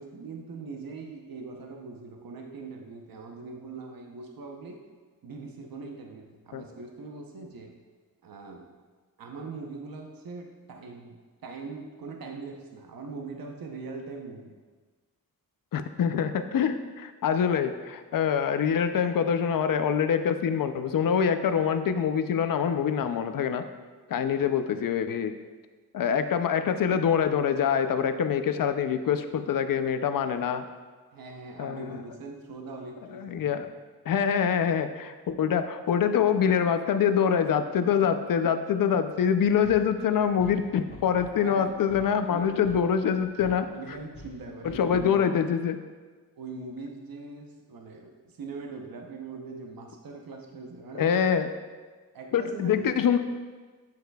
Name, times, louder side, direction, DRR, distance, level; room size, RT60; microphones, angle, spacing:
voice 1, 0.0-4.8 5.2-7.7 8.2-8.7 9.2-14.6 31.1-33.5 41.4-41.8 42.1-42.7 43.7-45.4 46.4-51.3 52.1-52.9, right 3 dB, 75° right, 2 dB, 0.8 m, -41 dB
voice 2, 15.7-23.6 24.1-25.3 25.9-30.6 31.6-32.0 33.1-33.7 34.1-43.7 44.7-45.8 51.0-51.5 52.3-53.2, left 7 dB, 70° left, 9 dB, 0.5 m, -25 dB
sound 1, 39.4-45.3, left 1 dB, 35° left, 1.1 m, -48 dB
8.5 x 7.9 x 2.3 m, 1.4 s
wide cardioid pair, 140°, 35 cm